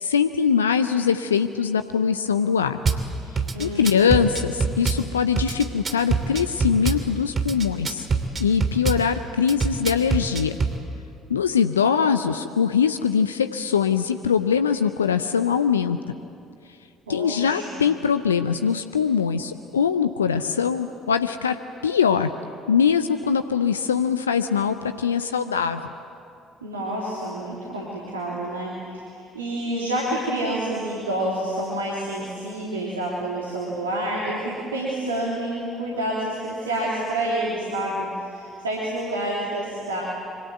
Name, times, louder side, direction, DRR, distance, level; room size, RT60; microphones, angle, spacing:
voice 1, 0.0-2.8 3.6-8.1 8.4-10.6 11.3-16.0 17.1-21.6 21.8-22.3 22.7-25.8, left 7 dB, 85° left, 10 dB, 0.6 m, -22 dB
Drum kit / Bass drum, 2.9-3.0 3.4-5.0 5.4-7.0 7.4-9.0 9.5-10.8, right 4 dB, 35° right, 2.8 m, -24 dB
voice 2, 3.5-4.2 17.1-17.8 26.6-40.0, right 1 dB, 85° right, -5 dB, 3.2 m, -28 dB
26.5 x 25.0 x 8.0 m, 2.4 s
figure-of-eight pair, 50°, 0 cm